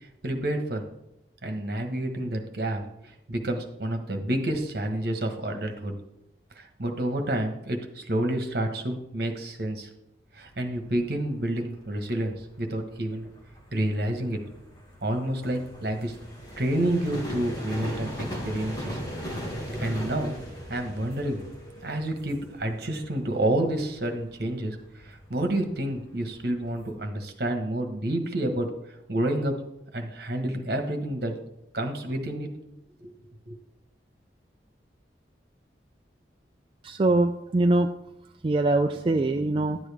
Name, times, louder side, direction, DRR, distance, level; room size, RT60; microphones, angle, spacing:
voice 1, 0.2-0.8 1.4-5.9 6.6-9.9 10.3-13.3 13.7-14.4 15.0-16.2 16.6-19.0 19.8-20.3 20.7-21.4 21.8-28.7 29.1-29.6 29.9-31.4 31.7-32.5 33.0-33.1 33.5-33.6, right 1 dB, 60° right, 4 dB, 1.3 m, -29 dB
sound 1, 10.3-26.9, equal, 20° left, 2.2 m, -40 dB
voice 2, 36.8-37.9 38.4-39.8, right 2 dB, 30° right, 5 dB, 0.3 m, -23 dB
11.0 x 9.0 x 3.5 m, 0.85 s
head